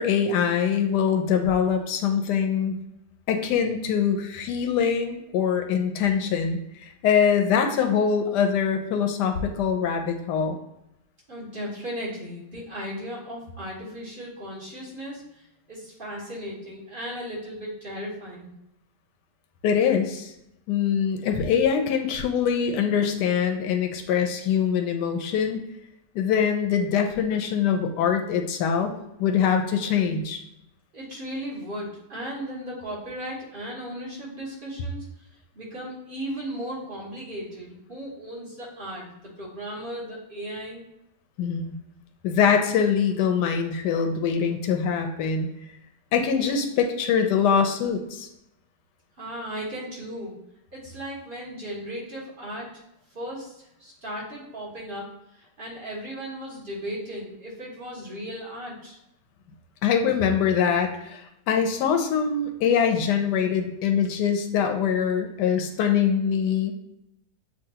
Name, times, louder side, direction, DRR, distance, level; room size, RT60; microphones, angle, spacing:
voice 1, 0.0-2.8 3.3-10.6 19.6-20.3 20.7-25.6 26.1-28.9 29.2-30.4 41.4-41.7 42.2-45.5 46.1-48.3 59.8-66.7, left 7 dB, 85° left, 4 dB, 1.2 m, -23 dB
voice 2, 11.3-15.4 15.7-18.5 30.9-35.0 35.5-39.1 39.4-40.8 49.2-50.4 50.7-52.8 53.1-55.1 55.4-59.0, equal, 35° right, -5 dB, 1.4 m, -36 dB
7.2 x 2.6 x 2.8 m, 0.83 s
omnidirectional pair, 1.8 m